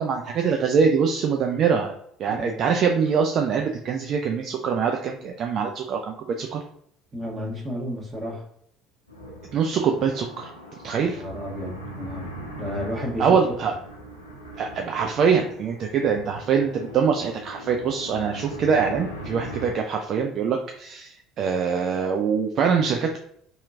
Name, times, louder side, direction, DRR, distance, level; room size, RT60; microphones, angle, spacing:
voice 1, 0.0-1.9 2.2-6.6 9.5-10.5 10.8-11.2 13.2-13.7 14.6-23.2, right 6 dB, 50° right, 3 dB, 0.3 m, -23 dB
voice 2, 2.3-2.7 7.1-8.5 11.0-12.3 12.6-13.4, equal, 25° right, -2 dB, 1.2 m, -32 dB
sound 1, 9.1-19.7, right 1 dB, 90° left, 0.5 m, -40 dB
2.8 x 2.7 x 2.3 m, 0.68 s
figure-of-eight pair, 60°, 0 cm